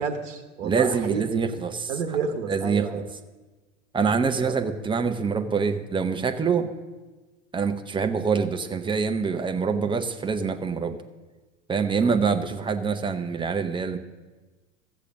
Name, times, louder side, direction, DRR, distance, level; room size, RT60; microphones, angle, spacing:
voice 1, 0.0-1.2 1.9-3.0 4.0-4.1 4.4-4.6 12.0-12.2, right 5 dB, 65° right, 7 dB, 1.0 m, -30 dB
voice 2, 0.6-1.9 2.5-2.9 3.9-6.7 7.5-11.0 11.7-14.0, right 5 dB, 15° right, 7 dB, 0.7 m, -25 dB
14.5 x 6.8 x 6.4 m, 1.3 s
figure-of-eight pair, 80°, 38 cm